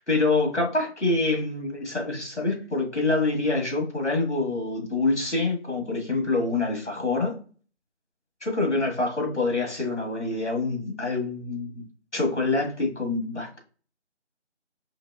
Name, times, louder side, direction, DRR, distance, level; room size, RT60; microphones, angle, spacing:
voice 1, 0.1-7.4 8.4-11.8 12.1-13.6, left 3 dB, 70° left, 1.8 m, -26 dB
4.6 x 3.2 x 2.4 m
figure-of-eight pair, 160°, 35 cm